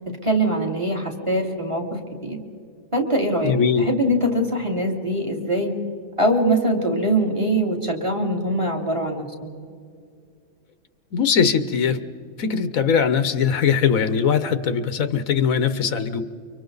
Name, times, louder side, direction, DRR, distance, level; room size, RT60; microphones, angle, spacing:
voice 1, 0.1-2.4 2.9-3.5 3.8-5.7 6.2-9.5, right 1 dB, 20° right, 2 dB, 2.7 m, -23 dB
voice 2, 3.4-3.8 11.1-12.0 12.4-16.2, left 6 dB, 75° left, 11 dB, 1.3 m, -20 dB
30.0 x 24.5 x 4.0 m, 2.2 s
omnidirectional pair, 1.4 m